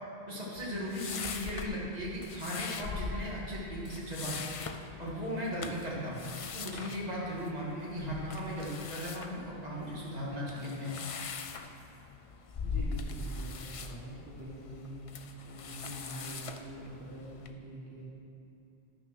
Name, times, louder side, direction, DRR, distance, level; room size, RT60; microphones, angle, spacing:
voice 1, 0.3-4.4 5.0-6.2 6.5-11.0, equal, 40° right, -6 dB, 2.2 m, -37 dB
sound 1, 0.6-17.5, left 4 dB, 45° left, 0.4 m, -42 dB
voice 2, 12.6-18.0, right 1 dB, 70° right, -6 dB, 1.7 m, -45 dB
10.0 x 6.2 x 6.1 m, 2.6 s
omnidirectional pair, 1.0 m